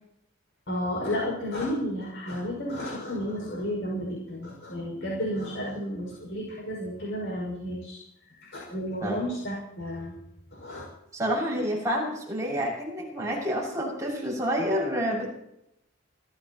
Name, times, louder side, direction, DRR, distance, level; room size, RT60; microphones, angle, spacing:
voice 1, 0.7-8.0 8.5-10.2 10.5-10.9, equal, 65° left, -3 dB, 5.9 m, -32 dB
voice 2, 11.1-15.3, equal, 15° right, -4 dB, 6.6 m, -28 dB
26.0 x 15.5 x 3.0 m, 0.80 s
head